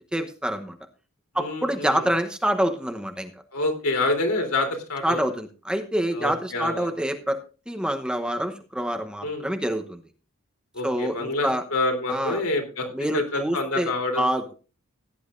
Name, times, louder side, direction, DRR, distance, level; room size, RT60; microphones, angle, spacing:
voice 1, 0.1-0.7 1.3-3.3 5.0-7.4 7.7-10.0 10.8-11.6 12.1-12.4 12.9-14.5, right 1 dB, 5° right, 6 dB, 0.9 m, -26 dB
voice 2, 1.4-2.0 3.5-5.2 6.1-6.9 9.2-9.5 10.7-12.9 13.1-14.3, left 2 dB, 75° left, 4 dB, 3.5 m, -27 dB
16.5 x 10.5 x 2.6 m, 0.34 s
head